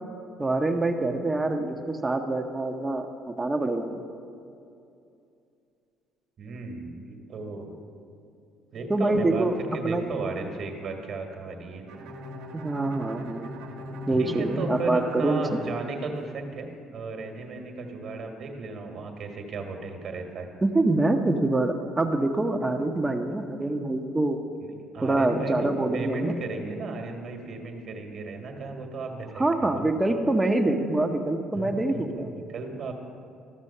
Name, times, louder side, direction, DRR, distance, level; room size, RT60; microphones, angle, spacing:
voice 1, 0.4-4.0 8.9-9.6 9.8-10.0 12.5-13.5 14.1-15.4 20.6-24.4 25.0-26.3 29.4-32.3, right 2 dB, 20° right, 4 dB, 0.8 m, -25 dB
voice 2, 6.4-7.8 8.7-9.5 9.7-11.8 14.1-16.7 16.9-20.5 24.6-29.9 31.5-32.9, right 3 dB, 55° right, 4 dB, 1.4 m, -35 dB
Bowed string instrument, 11.9-16.7, left 1 dB, 80° right, 1.2 m, -40 dB
13.5 x 6.1 x 5.5 m, 2.5 s
supercardioid pair, 70°, 0 cm